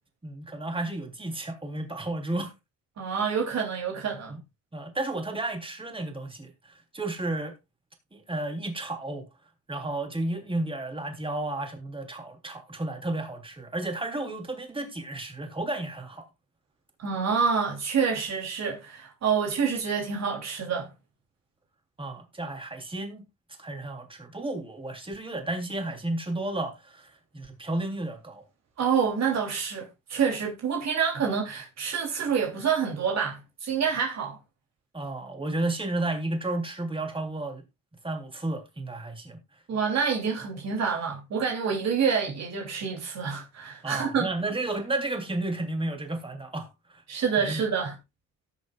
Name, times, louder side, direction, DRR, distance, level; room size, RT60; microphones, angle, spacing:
voice 1, 0.2-2.5 4.3-4.4 4.7-7.6 8.1-9.3 9.7-16.3 22.0-23.2 23.6-28.4 34.9-37.6 38.0-39.4 43.8-47.0 47.5-47.6, right 2 dB, 15° right, 3.4 m, -32 dB
voice 2, 3.0-4.4 17.0-20.9 28.8-34.4 39.7-44.3 47.1-47.9, right 6 dB, 60° right, 3.1 m, -27 dB
17.5 x 6.7 x 2.4 m
cardioid pair, 90°, 30 cm